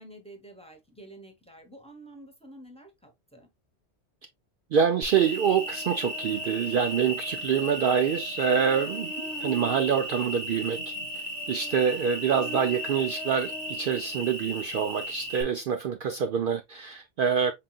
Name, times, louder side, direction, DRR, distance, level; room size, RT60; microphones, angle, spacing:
voice 1, 0.0-3.5 7.4-7.5, right 1 dB, 5° left, 1.0 m, -49 dB
voice 2, 4.7-10.9 11.5-17.5, right 7 dB, 60° right, 0.6 m, -26 dB
Cricket, 5.0-15.4, equal, 35° right, 1.8 m, -35 dB
5.7 x 3.8 x 2.3 m
omnidirectional pair, 1.2 m